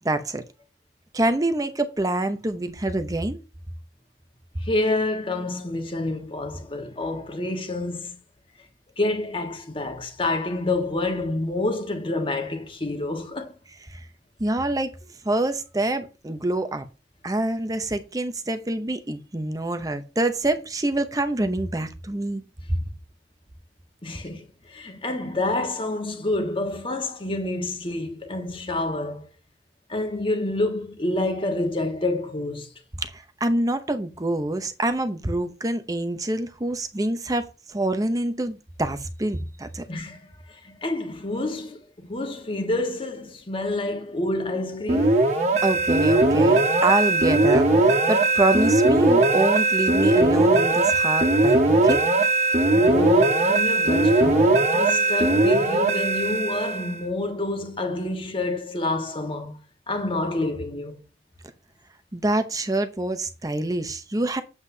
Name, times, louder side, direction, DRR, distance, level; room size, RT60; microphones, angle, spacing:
voice 1, 0.0-0.4 1.1-3.4 13.9-14.1 14.4-14.9 15.2-16.8 17.2-22.4 33.0-39.8 45.6-52.0 62.1-64.4, right 2 dB, 20° right, 0.7 m, -26 dB
voice 2, 4.6-8.2 9.0-13.5 24.0-29.3 29.9-32.7 39.9-45.3 52.7-59.6 59.9-61.0, left 2 dB, 30° left, 1.4 m, -28 dB
sound 1, 44.9-57.0, right 2 dB, 40° right, 1.6 m, -19 dB
8.0 x 7.6 x 2.7 m
head